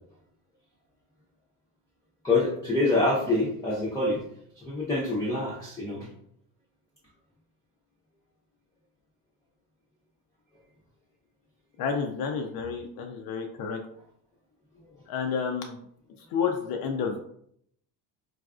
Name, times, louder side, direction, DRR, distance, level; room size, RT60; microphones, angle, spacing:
voice 1, 2.2-4.2 4.6-6.1, left 2 dB, 5° left, -6 dB, 0.6 m, -26 dB
voice 2, 11.8-13.8 15.1-15.8 16.3-17.2, left 6 dB, 50° left, 3 dB, 0.5 m, -30 dB
3.9 x 2.4 x 2.3 m, 0.69 s
cardioid pair, 105°, 47 cm